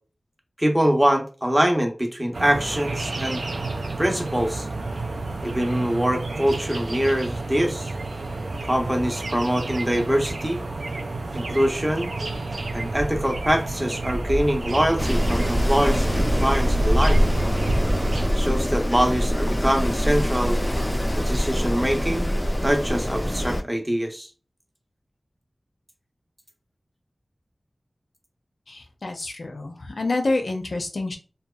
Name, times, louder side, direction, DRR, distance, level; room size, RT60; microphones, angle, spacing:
voice 1, 0.6-3.4 4.0-4.7 5.4-7.9 8.6-10.6 11.3-12.1 12.7-17.2 18.3-20.6 21.2-22.3 22.6-24.3, equal, 15° right, 3 dB, 0.6 m, -24 dB
sound 1, 2.3-18.3, right 2 dB, 85° right, 0.3 m, -29 dB
Wind, 15.0-23.6, equal, 15° left, 0.3 m, -24 dB
voice 2, 28.7-31.2, left 2 dB, 75° left, 4 dB, 0.5 m, -27 dB
2.8 x 2.2 x 2.2 m, 0.36 s
wide cardioid pair, 60°, 0 cm